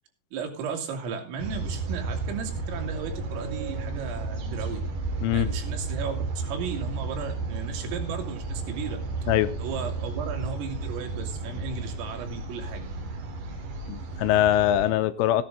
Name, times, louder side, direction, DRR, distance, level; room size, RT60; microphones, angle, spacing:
voice 1, 0.3-4.8 5.3-9.0 9.6-12.9, right 6 dB, 80° right, 5.1 m, -35 dB
sound 1, 1.4-14.9, right 3 dB, 55° right, 4.3 m, -33 dB
voice 2, 5.2-5.5 9.3-9.5 13.9-15.4, left 12 dB, 80° left, 3.1 m, -22 dB
15.0 x 10.5 x 3.9 m
omnidirectional pair, 5.9 m